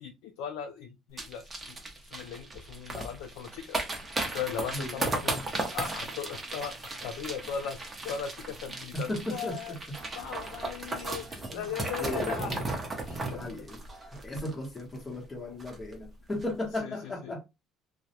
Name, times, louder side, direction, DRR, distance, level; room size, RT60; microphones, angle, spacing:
voice 1, 0.0-1.8 2.1-3.8 4.3-5.4 5.7-12.7 13.1-13.4 16.8-17.4, left 8 dB, 85° left, 0.4 m, -38 dB
sound 1, 1.2-15.0 15.2-15.3 15.6-15.9 16.3-16.4, right 2 dB, 20° right, 0.7 m, -36 dB
voice 2, 8.9-9.8 11.3-11.7 12.0-12.6 13.3-13.8 14.2-17.5, left 1 dB, 20° left, 0.9 m, -36 dB
2.2 x 2.0 x 2.8 m
cardioid pair, 115°, 0 cm